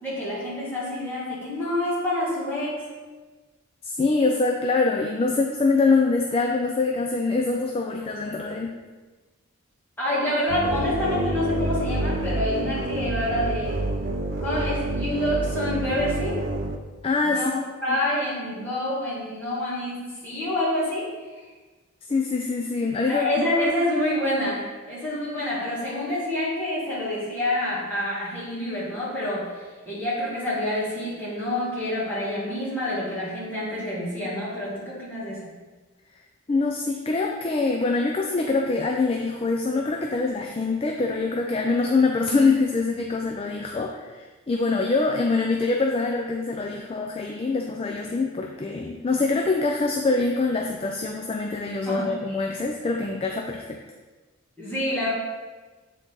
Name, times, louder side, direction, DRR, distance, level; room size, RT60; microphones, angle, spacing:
voice 1, 0.0-2.8 10.0-13.8 14.4-16.4 17.2-17.5 17.8-21.1 23.1-35.6 51.9-52.1 54.6-55.1, left 1 dB, 10° left, -9 dB, 1.9 m, -27 dB
voice 2, 3.8-8.8 17.0-17.6 22.1-23.3 36.5-53.8, left 3 dB, 25° left, 1 dB, 0.3 m, -24 dB
sound 1, 10.5-16.8, right 1 dB, 55° right, 0.5 m, -28 dB
7.8 x 3.9 x 3.8 m, 1.3 s
head